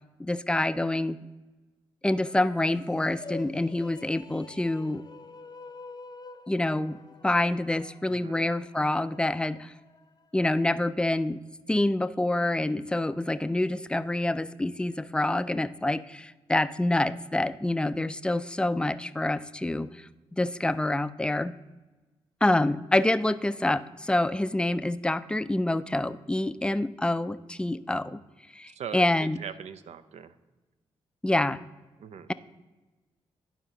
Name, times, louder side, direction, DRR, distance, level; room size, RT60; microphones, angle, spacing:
voice 1, 0.2-1.2 2.0-5.0 6.5-7.0 7.2-9.7 10.3-11.4 11.7-21.5 22.4-28.2 28.5-29.4 31.2-31.6, left 1 dB, 10° left, 14 dB, 0.3 m, -27 dB
sound 1, 2.1-10.6, left 3 dB, 35° left, 0.7 m, -47 dB
voice 2, 28.7-30.3 32.0-32.3, right 8 dB, 65° right, 12 dB, 0.5 m, -41 dB
11.0 x 4.7 x 3.8 m, 1.2 s
supercardioid pair, 45°, 12 cm